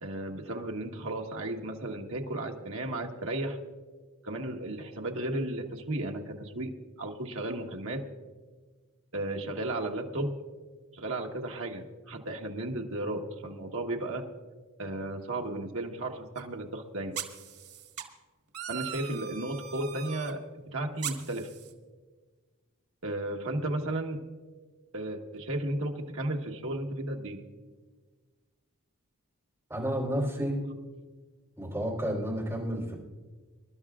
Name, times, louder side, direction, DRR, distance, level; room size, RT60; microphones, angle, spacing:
voice 1, 0.0-3.6 4.2-6.7 7.0-8.0 9.1-10.3 10.9-14.2 14.8-17.2 18.7-20.4 20.7-21.5 23.0-24.2 24.9-27.4, right 1 dB, 60° right, 1 dB, 1.3 m, -34 dB
sound 1, 16.4-16.5 17.1-18.0 18.5-20.3 21.0-21.7, right 9 dB, 90° right, 1.7 m, -40 dB
voice 2, 29.7-30.6 31.6-32.9, equal, 10° right, -4 dB, 3.7 m, -31 dB
26.0 x 12.0 x 2.4 m, 1.4 s
head